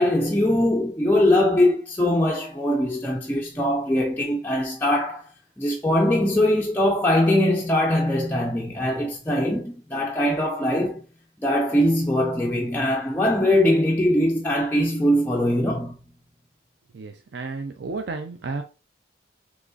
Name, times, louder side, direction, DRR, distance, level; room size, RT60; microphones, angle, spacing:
voice 1, 0.0-5.3 5.6-11.0 11.4-16.0, left 1 dB, 10° left, 0.3 m, -21 dB
voice 2, 16.9-18.6, right 3 dB, 65° right, 0.4 m, -32 dB
3.6 x 3.0 x 2.4 m
head